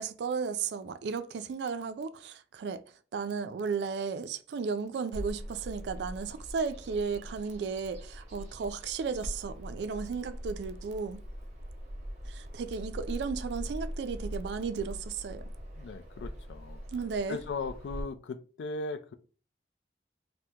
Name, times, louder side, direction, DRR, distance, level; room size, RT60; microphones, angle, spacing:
voice 1, 0.0-2.8 3.1-11.2 12.2-15.4 16.9-17.4, right 5 dB, 75° right, 0.3 m, -34 dB
Bird vocalization bird call bird song, 5.1-18.0, equal, 40° right, 0.7 m, -42 dB
voice 2, 15.8-16.8 17.3-19.1, left 3 dB, 90° left, 0.4 m, -38 dB
2.8 x 2.1 x 3.4 m
head